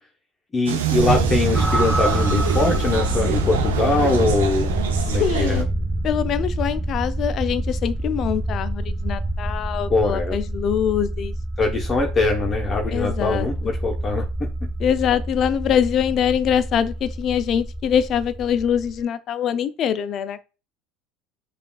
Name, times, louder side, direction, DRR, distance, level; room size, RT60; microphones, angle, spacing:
voice 1, 0.5-4.7 5.1-5.6 9.9-10.4 11.6-14.2, left 3 dB, 30° left, 0.9 m, -22 dB
sound 1, 0.7-5.6, right 6 dB, 80° right, 0.6 m, -26 dB
sound 2, 1.0-19.0, right 1 dB, 10° right, 0.9 m, -26 dB
voice 2, 5.2-5.7 6.0-11.3 12.9-13.5 14.8-20.4, left 9 dB, 45° left, 0.4 m, -23 dB
5.1 x 2.4 x 2.3 m
hypercardioid pair, 75°, 0 cm